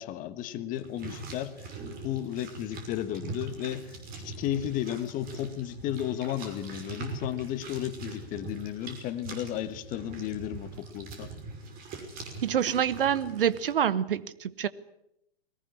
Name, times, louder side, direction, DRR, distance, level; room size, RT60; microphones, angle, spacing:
voice 1, 0.0-1.7 2.0-11.3, left 12 dB, 25° left, 12 dB, 1.5 m, -34 dB
sound 1, 0.7-13.7, right 3 dB, 30° right, 5.8 m, -42 dB
voice 2, 12.4-14.7, right 9 dB, 60° right, 16 dB, 1.2 m, -27 dB
21.5 x 19.0 x 9.9 m, 0.82 s
figure-of-eight pair, 115°, 31 cm